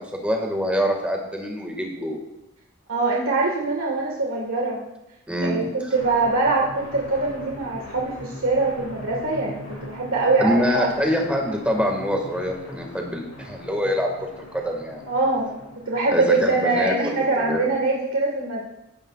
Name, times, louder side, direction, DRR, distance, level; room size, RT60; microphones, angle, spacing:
voice 1, 0.0-2.2 5.3-5.9 10.4-15.0 16.1-17.7, equal, 5° right, 1 dB, 1.8 m, -25 dB
voice 2, 2.9-4.8 5.4-10.9 15.1-15.6 15.8-18.6, right 3 dB, 90° right, -2 dB, 1.7 m, -23 dB
sound 1, 5.9-17.1, left 1 dB, 90° left, 4.1 m, -40 dB
16.0 x 10.5 x 2.4 m, 0.90 s
head